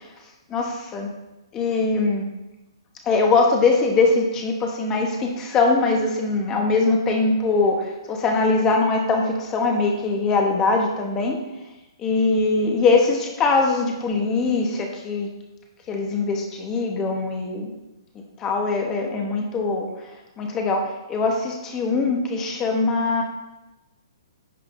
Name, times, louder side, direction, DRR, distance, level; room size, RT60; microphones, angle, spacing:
voice 1, 0.5-1.1 1.5-2.3 3.1-11.4 12.0-15.3 15.9-17.7 18.4-19.9 20.4-23.2, left 3 dB, 20° left, 2 dB, 1.0 m, -22 dB
10.0 x 5.7 x 2.6 m, 1.0 s
hypercardioid pair, 155°, 3 cm